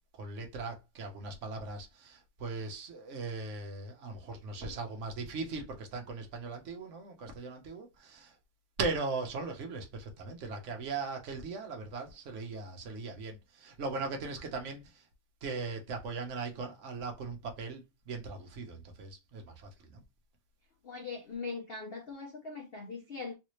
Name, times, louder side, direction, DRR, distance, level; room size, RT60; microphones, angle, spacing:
voice 1, 0.1-8.4 8.8-15.1 15.4-20.0, right 3 dB, 50° right, 1.0 m, -39 dB
voice 2, 20.8-23.3, left 4 dB, 75° left, 0.5 m, -41 dB
3.2 x 2.6 x 3.0 m
omnidirectional pair, 1.9 m